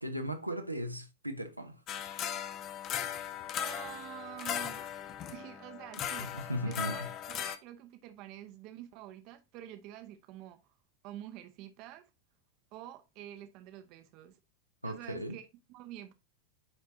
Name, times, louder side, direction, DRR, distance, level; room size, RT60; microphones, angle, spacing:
voice 1, 0.0-1.8 6.3-7.1 14.8-15.4, equal, 90° right, 0.9 m, -37 dB
sound 1, 1.9-7.6, left 9 dB, 35° left, 0.7 m, -38 dB
voice 2, 3.6-4.9 5.3-6.3 6.6-10.6 11.0-12.1 12.7-14.4 14.8-16.1, right 13 dB, 40° right, 0.8 m, -48 dB
9.8 x 4.5 x 2.7 m
figure-of-eight pair, 90°, 0 cm